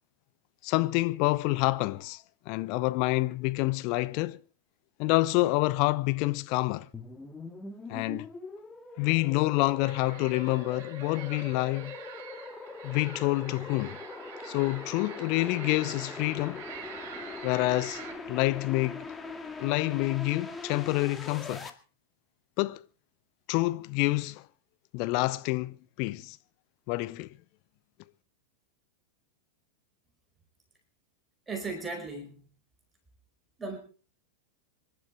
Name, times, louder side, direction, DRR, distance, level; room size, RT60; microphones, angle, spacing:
voice 1, 0.6-4.4 5.0-6.9 7.9-8.3 9.0-12.0 12.8-14.0 14.4-16.6 17.4-18.0 18.3-19.1 19.6-21.7 22.6-22.8 23.5-24.4 24.9-26.4 26.9-27.3, left 20 dB, 45° left, 0.8 m, -27 dB
sound 1, 6.9-21.7, left 3 dB, 10° left, 2.1 m, -42 dB
sound 2, 9.8-18.1, right 9 dB, 50° right, 5.7 m, -47 dB
voice 2, 31.5-32.4 33.6-33.8, right 3 dB, 15° right, 4.8 m, -36 dB
26.5 x 12.0 x 3.3 m
figure-of-eight pair, 90°, 0 cm